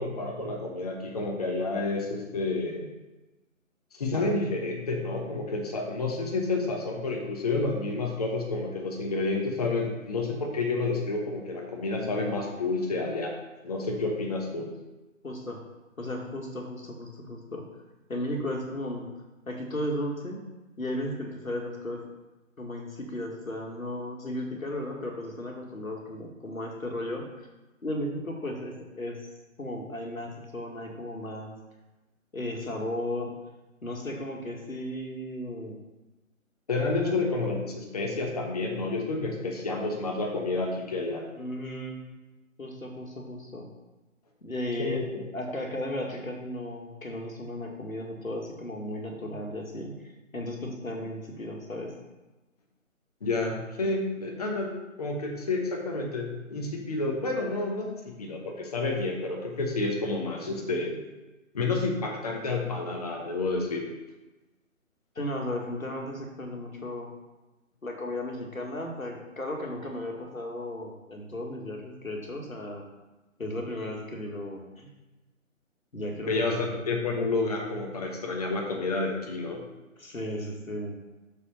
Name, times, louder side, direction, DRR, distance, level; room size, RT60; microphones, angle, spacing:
voice 1, 0.0-2.9 4.0-13.3 13.6-14.7 36.7-41.2 44.8-45.1 53.2-61.0 61.5-63.8 76.3-79.6, left 3 dB, 30° left, 0 dB, 1.0 m, -30 dB
voice 2, 15.2-15.6 16.0-17.7 18.1-19.1 19.5-20.4 20.8-22.0 22.6-27.5 27.8-29.3 29.6-31.5 32.3-33.4 33.8-35.8 36.9-37.2 41.4-42.0 42.6-43.7 44.4-45.0 45.3-50.0 50.3-51.9 65.2-67.1 67.8-72.8 73.4-74.9 75.9-76.7 80.0-81.0, left 1 dB, 80° left, 1 dB, 1.9 m, -35 dB
6.7 x 4.8 x 5.6 m, 1.1 s
figure-of-eight pair, 150°, 41 cm